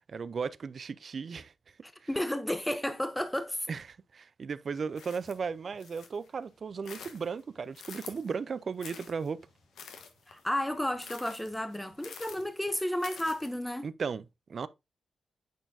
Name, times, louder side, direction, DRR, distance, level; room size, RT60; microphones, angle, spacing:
voice 1, 0.0-1.5 2.0-2.1 3.7-9.4 13.8-14.7, right 5 dB, 55° right, 0.4 m, -36 dB
voice 2, 1.8-3.7 10.3-13.9, left 1 dB, 5° left, 0.7 m, -32 dB
sound 1, 4.9-6.3 6.7-8.4 8.8-13.6, left 6 dB, 85° left, 1.2 m, -49 dB
9.1 x 4.3 x 2.7 m
cardioid pair, 80°, 0 cm